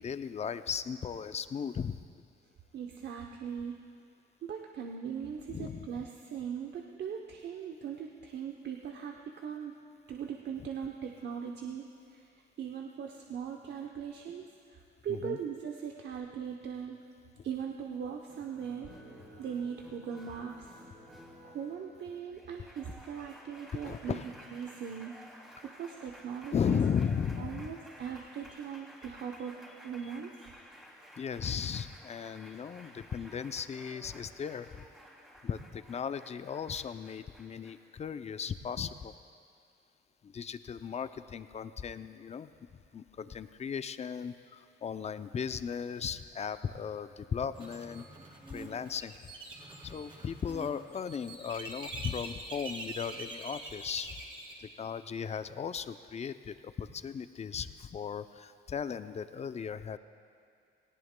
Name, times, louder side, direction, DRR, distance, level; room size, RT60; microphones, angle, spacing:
voice 1, 0.0-2.0 5.5-6.0 15.1-15.4 23.8-24.3 26.5-27.7 30.0-30.1 31.2-34.8 35.4-39.1 40.2-42.5 42.9-48.0 48.5-49.1 49.8-54.1 54.6-60.0, left 7 dB, 35° left, 12 dB, 0.5 m, -36 dB
voice 2, 2.7-3.8 4.4-9.7 10.1-12.3 12.6-14.8 15.0-17.0 17.4-18.9 19.4-20.7 21.4-24.2 24.5-25.2 25.6-26.8 27.4-30.5, right 7 dB, 60° right, 2 dB, 0.8 m, -40 dB
Applause, 18.3-38.0, equal, 5° right, 2.6 m, -54 dB
sound 1, 47.6-54.5, right 2 dB, 25° right, 2.4 m, -45 dB
18.0 x 17.0 x 2.2 m, 2.3 s
cardioid pair, 90°, 20 cm